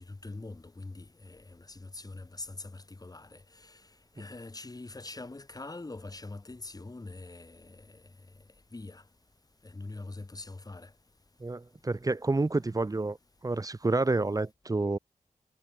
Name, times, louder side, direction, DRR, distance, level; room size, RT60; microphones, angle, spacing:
voice 1, 0.0-3.8 4.2-8.0 8.7-9.0 9.6-10.9, left 2 dB, 30° left, 4.5 m, -44 dB
voice 2, 11.4-13.2 13.4-15.0, right 3 dB, 25° right, 1.3 m, -29 dB
wide cardioid pair, 110°, 13 cm